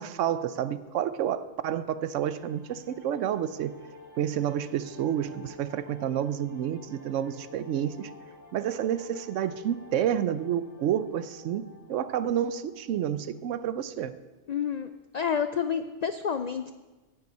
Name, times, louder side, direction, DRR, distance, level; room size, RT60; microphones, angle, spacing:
voice 1, 0.0-3.8 4.2-8.1 8.5-14.1, right 10 dB, 80° right, 14 dB, 1.0 m, -29 dB
sound 1, 2.2-13.2, left 2 dB, 15° left, 1.1 m, -51 dB
voice 2, 14.5-16.7, left 7 dB, 80° left, 10 dB, 0.3 m, -29 dB
9.9 x 6.8 x 8.3 m, 1.2 s
omnidirectional pair, 1.3 m